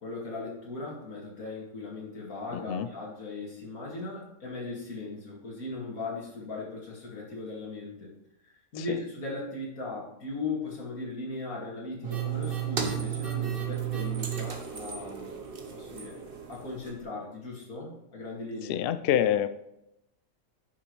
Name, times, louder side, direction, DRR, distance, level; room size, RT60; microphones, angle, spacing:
voice 1, 0.0-8.1 8.4-15.4 15.7-16.2 16.5-18.8, left 3 dB, 90° left, -3 dB, 2.7 m, -38 dB
voice 2, 2.5-2.9 8.8-9.0 18.7-19.5, left 10 dB, 65° left, 11 dB, 0.6 m, -27 dB
sound 1, 12.0-17.0, right 9 dB, 45° right, 1.1 m, -33 dB
10.0 x 6.3 x 3.2 m, 0.84 s
omnidirectional pair, 1.4 m